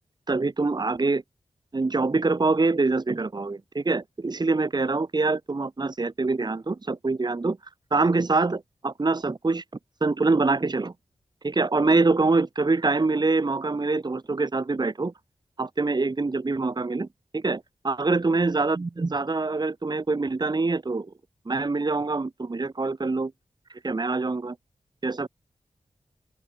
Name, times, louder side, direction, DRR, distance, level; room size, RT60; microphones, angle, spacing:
voice 1, 0.3-1.2 1.7-7.6 7.9-9.6 10.0-10.9 11.4-15.1 15.6-17.1 17.3-21.1 21.5-23.3 23.7-24.5 25.0-25.3, right 3 dB, 40° right, 1.4 m, -25 dB
open air
cardioid pair, 60°, 11 cm